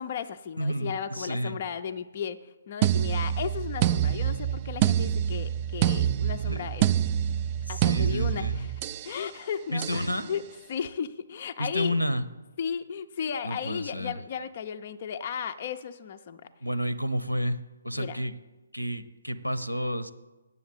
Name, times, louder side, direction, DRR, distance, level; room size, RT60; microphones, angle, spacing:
voice 1, 0.0-6.9 7.7-8.7 9.0-10.4 10.7-11.9 12.6-16.5 18.0-18.2, left 7 dB, 35° left, 7 dB, 0.5 m, -35 dB
voice 2, 0.6-1.6 6.5-6.7 7.7-8.6 9.7-10.3 11.6-12.2 13.4-14.2 16.6-17.6 17.8-18.4 18.7-20.1, equal, 90° left, 14 dB, 0.8 m, -30 dB
sound 1, 2.8-9.1 9.8-10.1, right 10 dB, 25° right, 0.3 m, -26 dB
8.6 x 7.1 x 8.2 m, 1.2 s
figure-of-eight pair, 140°, 0 cm